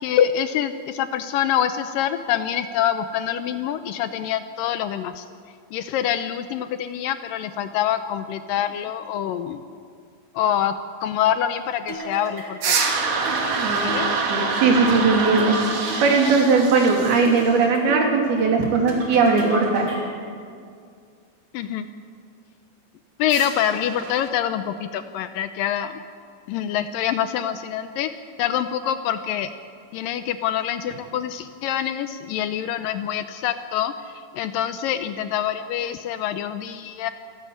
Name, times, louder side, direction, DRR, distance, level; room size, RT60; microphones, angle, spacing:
voice 1, 0.0-5.2 5.7-9.6 10.4-10.7 11.0-12.8 13.7-14.1 21.5-21.9 23.2-26.0 26.5-28.1 28.4-29.5 29.9-33.9 34.3-37.1, left 10 dB, 75° left, 10 dB, 2.2 m, -25 dB
sound 1, 11.9-20.2, right 1 dB, 30° right, 3.4 m, -34 dB
sound 2, 12.6-17.6 23.3-24.3, right 4 dB, 50° right, 2.8 m, -26 dB
voice 2, 13.6-19.9, right 4 dB, 80° right, 1 dB, 4.5 m, -19 dB
27.0 x 12.0 x 8.6 m, 2.2 s
omnidirectional pair, 4.4 m